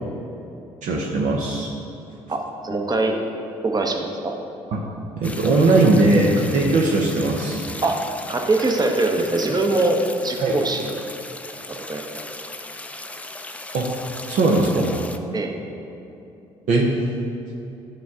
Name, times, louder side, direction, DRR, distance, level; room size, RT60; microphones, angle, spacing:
voice 1, 0.8-1.7 4.7-4.8 5.2-7.6 10.4-10.6 13.7-13.9 14.3-14.9 16.7-17.0, right 2 dB, 65° right, -2 dB, 0.8 m, -19 dB
voice 2, 2.3-3.2 3.6-4.3 7.8-8.0 8.3-10.9 11.9-12.2 15.3-15.5, right 2 dB, 30° right, 3 dB, 0.9 m, -22 dB
sound 1, 5.2-15.2, left 2 dB, 10° left, 0.4 m, -37 dB
9.1 x 4.8 x 3.7 m, 2.9 s
supercardioid pair, 65°, 14 cm